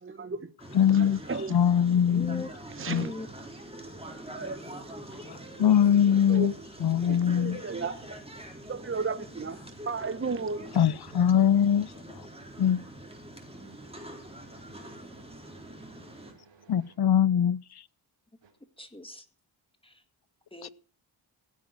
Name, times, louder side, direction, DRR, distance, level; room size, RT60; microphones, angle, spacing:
voice 1, 0.0-0.5 0.9-1.5 2.8-3.2 4.3-5.4 6.3-6.5 7.1-8.2 8.7-9.6 9.9-10.7, right 4 dB, 30° right, 1.0 m, -34 dB
sound 1, 0.6-16.3, right 1 dB, 15° right, 4.3 m, -44 dB
voice 2, 0.7-1.2 1.5-2.5 2.9-3.1 5.6-6.5 6.8-7.6 10.8-11.9 12.6-12.8 16.7-17.6 20.6-20.7, left 9 dB, 60° left, 0.7 m, -22 dB
voice 3, 2.1-2.5 2.9-3.3 18.8-19.3 19.8-19.9 20.5-20.7, left 2 dB, 10° left, 2.0 m, -39 dB
voice 4, 13.5-16.9, right 4 dB, 80° right, 3.5 m, -58 dB
16.5 x 7.6 x 8.8 m
wide cardioid pair, 90°, 44 cm